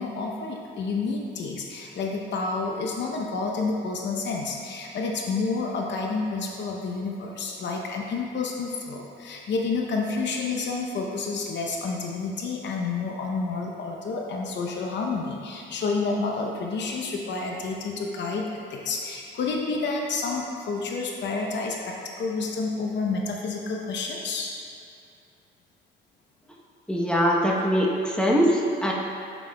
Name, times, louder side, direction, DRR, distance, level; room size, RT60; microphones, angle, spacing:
voice 1, 0.0-24.5, left 4 dB, 65° left, 0 dB, 0.7 m, -29 dB
voice 2, 26.9-28.9, equal, 5° left, -3 dB, 0.9 m, -22 dB
6.8 x 6.0 x 2.3 m, 2.5 s
cardioid pair, 90°, 20 cm